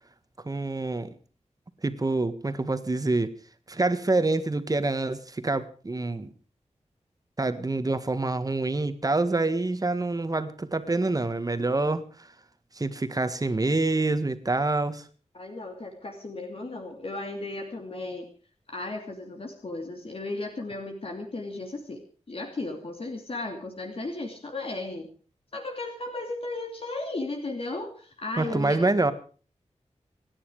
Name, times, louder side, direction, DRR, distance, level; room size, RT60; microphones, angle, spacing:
voice 1, 0.4-1.1 1.8-3.3 3.7-6.3 7.4-12.3 12.7-15.0 28.4-29.1, right 2 dB, 30° right, 11 dB, 1.6 m, -26 dB
voice 2, 15.3-18.3 18.7-22.0 22.3-25.1 25.5-28.9, left 2 dB, 50° left, 3 dB, 2.9 m, -35 dB
27.0 x 10.0 x 4.9 m, 0.40 s
wide cardioid pair, 105°, 12 cm